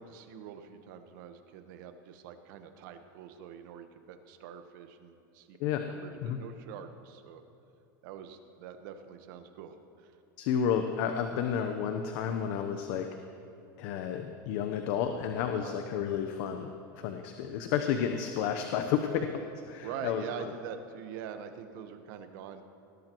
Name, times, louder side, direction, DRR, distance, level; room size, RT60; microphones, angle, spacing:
voice 1, 0.0-5.6 5.9-7.4 8.0-10.1 15.6-15.8 19.0-19.2 19.8-22.6, right 8 dB, 65° right, 7 dB, 1.2 m, -44 dB
voice 2, 10.4-13.1 13.8-16.7 17.0-19.3 19.7-20.5, left 8 dB, 60° left, 6 dB, 0.9 m, -31 dB
20.0 x 17.0 x 3.1 m, 2.7 s
supercardioid pair, 120°, 11 cm